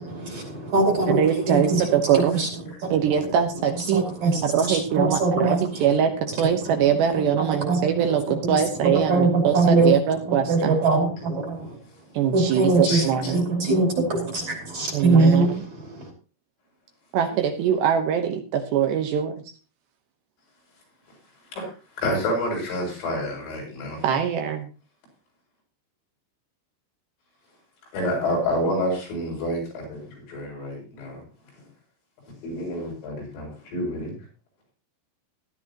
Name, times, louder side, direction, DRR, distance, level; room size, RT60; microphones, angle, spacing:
voice 1, 0.0-2.5 2.8-3.3 3.6-5.9 6.2-6.3 6.6-11.8 12.3-16.1, right 3 dB, 45° right, 3.4 m, -23 dB
voice 2, 1.1-2.4 2.9-4.0 4.4-6.1 6.4-8.2 8.5-10.8 12.2-13.7 14.9-15.5 17.1-19.3 24.0-24.6, right 8 dB, 70° right, 3.0 m, -23 dB
voice 3, 12.9-13.3 17.3-17.4 21.5-24.1 27.9-31.2 31.6-31.7 32.3-34.2, left 1 dB, 85° left, 10.0 m, -29 dB
17.5 x 12.0 x 3.0 m
omnidirectional pair, 5.8 m